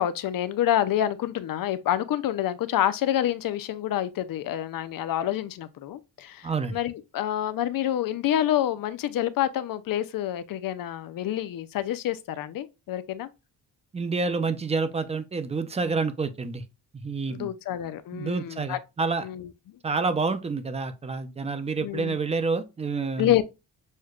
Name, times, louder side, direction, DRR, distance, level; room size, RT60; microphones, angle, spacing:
voice 1, 0.0-13.3 17.3-18.8 19.2-19.8 21.8-22.2 23.2-23.4, left 12 dB, 55° left, 0.5 m, -28 dB
voice 2, 6.4-6.8 13.9-16.6 16.9-17.5 18.1-19.3 19.8-23.4, right 4 dB, 15° right, 0.4 m, -28 dB
6.4 x 2.1 x 2.3 m
cardioid pair, 130°, 41 cm